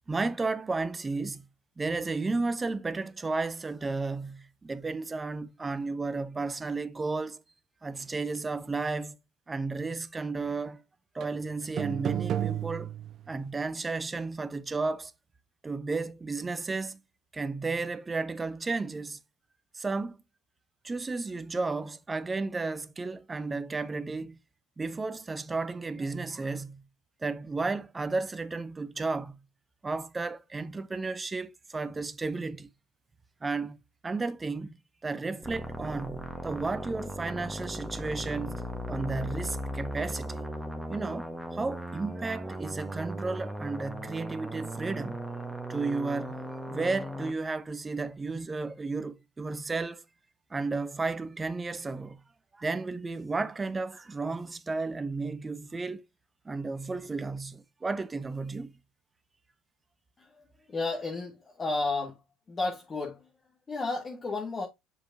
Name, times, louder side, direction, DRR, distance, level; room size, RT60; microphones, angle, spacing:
voice 1, 0.1-1.4 1.8-7.4 7.8-9.2 9.5-10.8 11.1-12.9 13.3-15.1 15.6-17.0 17.3-19.2 19.7-20.2 20.8-24.4 24.8-26.8 27.2-29.4 29.8-32.7 33.4-33.8 34.0-34.8 35.0-40.5 40.9-45.2 45.7-46.3 46.7-50.0 50.5-52.2 52.5-56.0 56.4-58.7, right 3 dB, 20° right, 0.8 m, -33 dB
sound 1, 11.2-11.4 11.8-13.4, right 10 dB, 50° right, 0.4 m, -32 dB
sound 2, 35.4-47.3, equal, ahead, 1.4 m, -37 dB
voice 2, 60.7-62.2 62.5-63.2 63.7-64.7, left 3 dB, 30° left, 1.6 m, -32 dB
7.0 x 5.2 x 2.7 m
hypercardioid pair, 70°, 0 cm